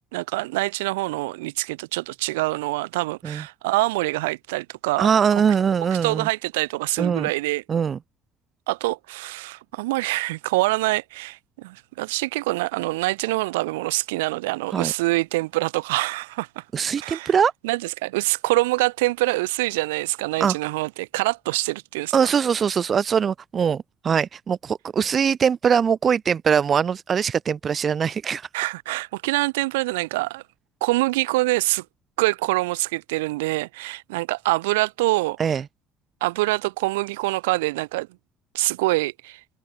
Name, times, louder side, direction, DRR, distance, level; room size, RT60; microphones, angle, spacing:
voice 1, 0.1-5.1 6.0-7.6 8.7-16.6 17.0-17.3 17.6-22.2 28.5-30.4 30.8-31.8 32.2-35.4 36.2-38.1 38.5-39.4, right 21 dB, 90° right, 7.9 m, -25 dB
voice 2, 5.0-6.3 7.0-7.3 7.7-8.0 14.7-14.9 16.7-17.5 20.4-20.6 22.1-28.5 35.4-35.6, right 7 dB, 45° right, 1.6 m, -22 dB
open air
supercardioid pair, 70°, 0 cm